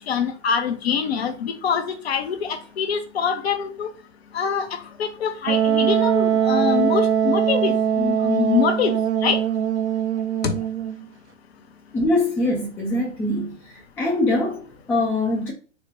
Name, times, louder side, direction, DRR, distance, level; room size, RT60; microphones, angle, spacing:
voice 1, 0.1-3.9 4.3-4.7 5.0-8.9 9.2-9.4 10.4-10.5, left 7 dB, 60° left, 0.6 m, -24 dB
Wind instrument woodwind instrument, 5.5-11.0, right 8 dB, 70° right, 0.6 m, -21 dB
voice 2, 11.9-15.5, left 2 dB, 5° left, 0.3 m, -23 dB
4.0 x 2.1 x 3.0 m
figure-of-eight pair, 105°, 35 cm